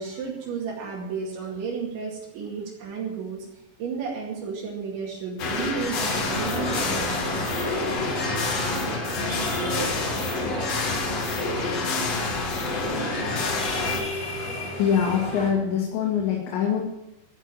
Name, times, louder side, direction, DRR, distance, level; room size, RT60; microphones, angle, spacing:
voice 1, 0.0-9.1 9.6-10.7, right 5 dB, 75° right, -4 dB, 4.6 m, -34 dB
sound 1, 5.4-14.0, left 3 dB, 50° left, 2.0 m, -27 dB
sound 2, 5.9-15.5, left 1 dB, 35° left, 8.0 m, -35 dB
voice 2, 14.8-16.8, left 7 dB, 75° left, -2 dB, 4.3 m, -23 dB
14.5 x 7.4 x 9.8 m, 0.91 s
omnidirectional pair, 5.3 m